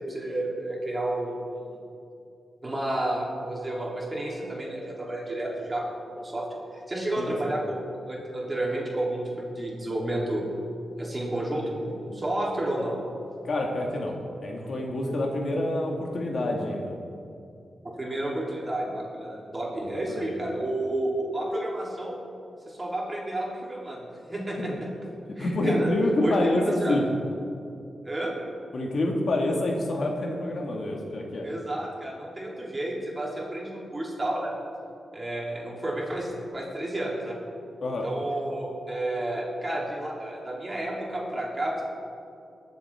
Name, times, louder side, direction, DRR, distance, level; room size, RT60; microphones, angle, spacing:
voice 1, 0.0-1.8 2.6-6.5 6.7-10.4 11.0-12.9 17.9-22.1 22.7-24.7 25.4-25.9 26.2-27.0 28.0-28.3 31.4-34.6 35.1-37.4 38.0-41.8, right 1 dB, 25° right, -3 dB, 2.9 m, -31 dB
voice 2, 7.2-7.5 13.4-14.1 14.4-17.0 19.8-20.3 24.6-24.7 25.2-27.1 28.7-31.5 37.8-38.1, left 1 dB, 60° left, 0 dB, 1.6 m, -27 dB
20.5 x 7.2 x 3.5 m, 2.5 s
cardioid pair, 80°, 0 cm